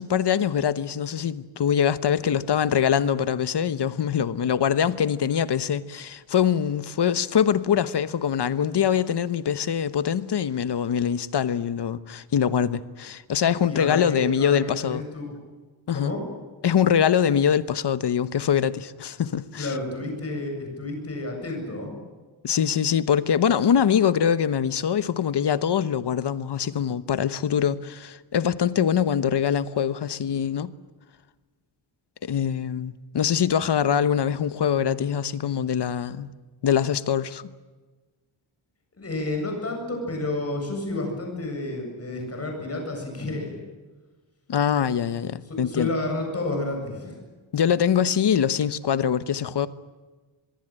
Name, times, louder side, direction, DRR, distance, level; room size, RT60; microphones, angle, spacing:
voice 1, 0.0-15.0 15.9-16.1 16.6-19.7 22.4-30.7 32.2-36.3 36.6-37.4 44.5-45.9 47.5-49.7, left 8 dB, 55° left, 1.1 m, -23 dB
voice 2, 13.7-15.3 15.9-16.2 19.6-21.9 39.0-43.5 45.5-47.2, left 2 dB, 30° left, 7.9 m, -30 dB
25.0 x 22.0 x 9.0 m
wide cardioid pair, 170°, 49 cm